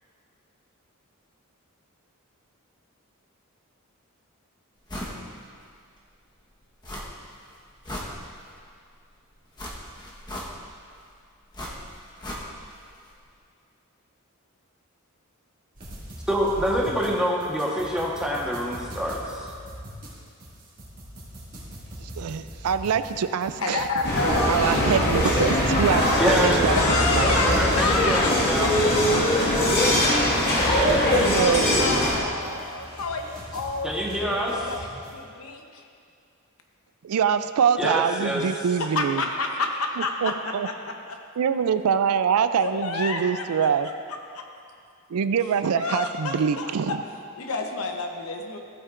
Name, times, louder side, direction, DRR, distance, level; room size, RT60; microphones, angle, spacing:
sound 1, 4.9-5.2 5.6-5.7 6.8-7.3 7.7-8.6 9.6-10.8 11.5-12.8 13.1-13.2, left 1 dB, 20° left, 1.2 m, -37 dB
sound 2, 15.7-35.2, equal, 35° right, 2.3 m, -41 dB
voice 1, 16.3-19.5 26.2-26.7 27.2-28.7 30.7-32.0 33.8-34.5 37.8-38.4, equal, 5° right, -4 dB, 1.3 m, -26 dB
voice 2, 22.0-23.8 24.5-26.8 27.1-27.4 30.8-31.9 37.0-39.2 40.2-40.7 41.4-43.9 45.1-47.0, right 7 dB, 85° right, 12 dB, 0.4 m, -24 dB
voice 3, 23.6-24.6 26.7-29.4 31.7-33.9 34.2-35.8 38.8-41.2 42.6-43.9 44.3-44.4 45.7-47.0 47.4-48.6, left 3 dB, 75° left, 3 dB, 1.0 m, -29 dB
sound 3, 24.0-32.2, left 1 dB, 50° left, 1.8 m, -21 dB
15.0 x 8.8 x 2.5 m, 2.3 s
head